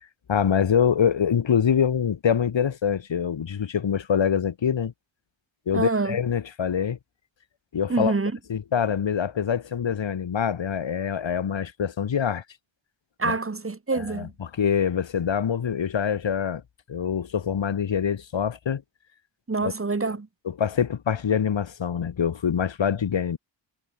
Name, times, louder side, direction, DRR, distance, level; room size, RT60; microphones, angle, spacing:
voice 1, 0.3-4.9 5.7-7.0 7.7-8.1 8.5-12.4 13.2-13.3 13.9-16.6 16.9-18.8 19.6-19.7 20.4-23.4, left 7 dB, 65° left, 4.9 m, -25 dB
voice 2, 5.7-6.2 7.9-8.3 13.2-14.3 19.5-20.3, right 3 dB, 25° right, 4.6 m, -26 dB
wide cardioid pair, 140°, 48 cm